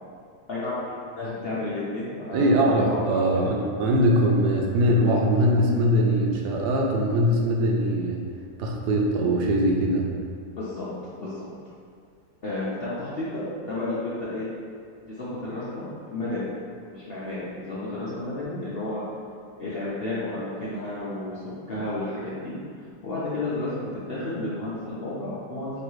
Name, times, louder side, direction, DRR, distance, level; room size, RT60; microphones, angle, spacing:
voice 1, 0.5-3.3 10.6-10.9 11.2-11.3 12.4-14.5 15.1-16.5 16.8-19.0 19.6-22.5 23.0-25.8, left 2 dB, 60° left, -10 dB, 0.6 m, -32 dB
voice 2, 2.3-8.2 8.6-10.1, equal, 75° right, -1 dB, 1.1 m, -22 dB
3.1 x 2.9 x 4.6 m, 2.2 s
omnidirectional pair, 1.9 m